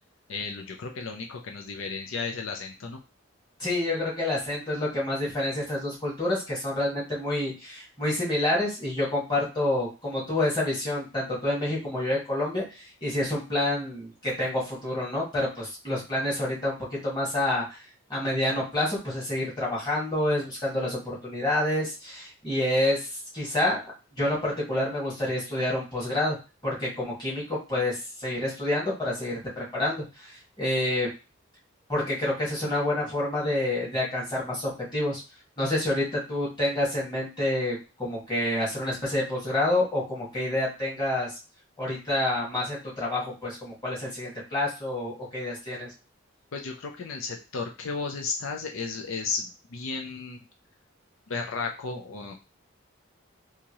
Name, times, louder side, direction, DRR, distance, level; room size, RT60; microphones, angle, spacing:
voice 1, 0.3-3.0 46.5-50.4 51.3-52.3, left 4 dB, 80° left, 2 dB, 0.5 m, -34 dB
voice 2, 3.6-16.7 17.0-17.8 18.1-23.8 24.2-26.4 26.6-31.1 31.9-35.2 35.6-41.4 41.8-45.9, left 1 dB, 20° left, -6 dB, 1.7 m, -28 dB
3.6 x 2.8 x 3.0 m, 0.30 s
head